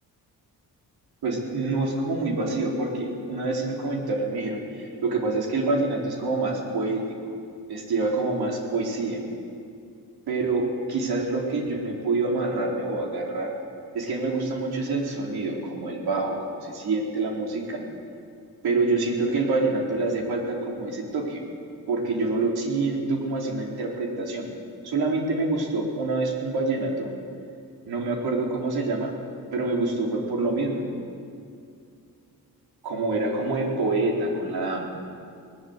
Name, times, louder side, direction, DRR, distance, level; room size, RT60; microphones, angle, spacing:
voice 1, 1.2-7.0 7.7-9.2 10.3-13.5 13.9-17.8 18.6-21.4 21.9-24.5 24.8-27.1 27.9-29.1 29.5-30.9 32.8-34.9, right 3 dB, 90° right, 0 dB, 4.1 m, -26 dB
20.0 x 20.0 x 8.1 m, 2.4 s
wide cardioid pair, 125°, 37 cm